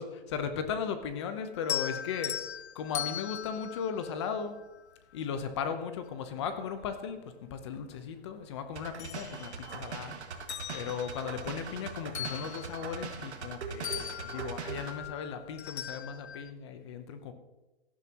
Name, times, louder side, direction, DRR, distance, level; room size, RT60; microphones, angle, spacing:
voice 1, 0.3-2.3 2.7-4.6 5.1-10.2 10.7-17.3, left 7 dB, 25° left, 9 dB, 0.8 m, -36 dB
sound 1, 1.6-4.9 6.5-6.6 7.2-8.4 8.7-10.0 10.3-13.5 13.8-16.5, left 10 dB, 80° left, 0.7 m, -40 dB
sound 2, 8.8-15.0, right 5 dB, 85° right, 1.9 m, -41 dB
16.5 x 11.0 x 3.0 m, 1.1 s
hypercardioid pair, 165°, 33 cm